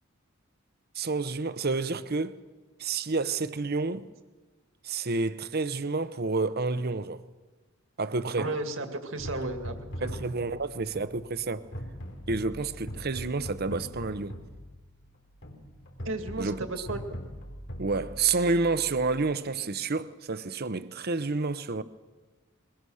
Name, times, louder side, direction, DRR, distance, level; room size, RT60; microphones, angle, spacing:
voice 1, 0.9-2.3 2.8-4.1 4.8-7.2 8.0-8.5 10.0-11.6 12.3-14.4 16.4-16.9 17.8-21.8, right 3 dB, 50° right, 0.9 m, -29 dB
voice 2, 8.4-10.1 16.0-17.0, right 2 dB, 70° right, 2.2 m, -34 dB
sound 1, 9.2-19.3, equal, 60° left, 3.8 m, -42 dB
22.0 x 21.0 x 6.4 m
head